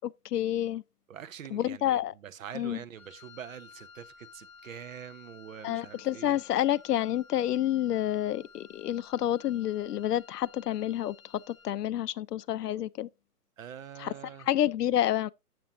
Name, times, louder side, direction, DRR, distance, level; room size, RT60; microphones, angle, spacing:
voice 1, 0.0-0.8 1.5-2.1 2.5-2.8 5.6-13.1 14.0-14.1 14.5-15.3, left 12 dB, 80° left, 0.5 m, -29 dB
voice 2, 1.1-6.4 13.6-14.5, right 9 dB, 55° right, 0.6 m, -45 dB
Wind instrument woodwind instrument, 2.9-11.8, left 5 dB, 20° left, 0.7 m, -54 dB
7.4 x 7.0 x 2.5 m
hypercardioid pair, 155°, 47 cm